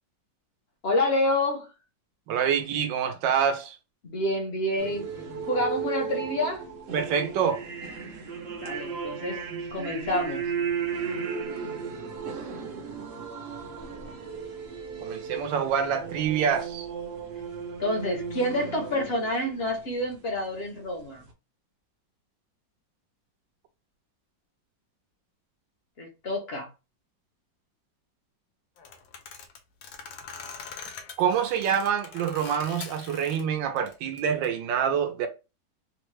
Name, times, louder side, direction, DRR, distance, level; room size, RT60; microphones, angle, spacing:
voice 1, 0.8-1.7 4.0-5.1 5.5-6.6 8.6-10.5 17.8-21.2 26.0-26.7, left 1 dB, 55° left, 0.7 m, -28 dB
voice 2, 2.3-3.7 6.9-7.6 15.0-16.9 31.2-35.3, right 7 dB, 85° right, 1.3 m, -26 dB
sound 1, 4.8-20.7, right 6 dB, 70° right, 0.6 m, -35 dB
sound 2, 28.8-33.4 33.7-34.5, left 6 dB, 85° left, 1.4 m, -43 dB
3.6 x 2.1 x 3.1 m
omnidirectional pair, 2.0 m